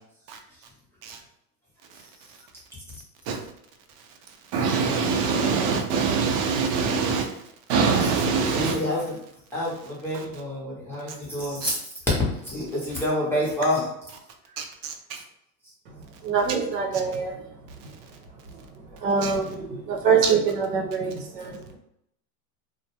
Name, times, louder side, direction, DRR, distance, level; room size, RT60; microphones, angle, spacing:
voice 1, 4.5-7.2 7.7-8.8 14.6-14.7 19.2-19.3, right 5 dB, 55° right, 0.6 m, -23 dB
voice 2, 8.5-9.1 9.5-11.8 12.5-13.9, left 1 dB, 5° left, 0.5 m, -28 dB
voice 3, 16.2-17.3 19.0-21.6, right 6 dB, 85° right, 0.9 m, -24 dB
2.3 x 2.2 x 2.8 m
supercardioid pair, 125°, 47 cm